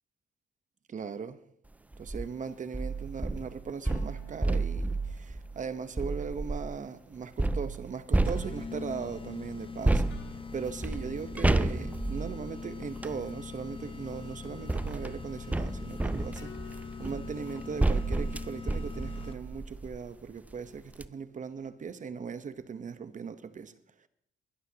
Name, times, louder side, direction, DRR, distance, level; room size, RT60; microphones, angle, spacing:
voice 1, 0.9-1.5 2.0-24.1, right 6 dB, 40° right, 1.0 m, -39 dB
sound 1, 1.9-2.3 2.7-6.8 7.4-8.9 9.8-13.2 14.1-20.1 20.5-20.6 20.9-21.1, right 2 dB, 5° right, 0.4 m, -31 dB
sound 2, 3.8-6.4 10.1-11.9 16.4-17.8, left 7 dB, 70° left, 2.5 m, -56 dB
sound 3, 8.2-19.6, left 5 dB, 25° left, 0.7 m, -42 dB
21.0 x 11.5 x 2.9 m
cardioid pair, 90°, 20 cm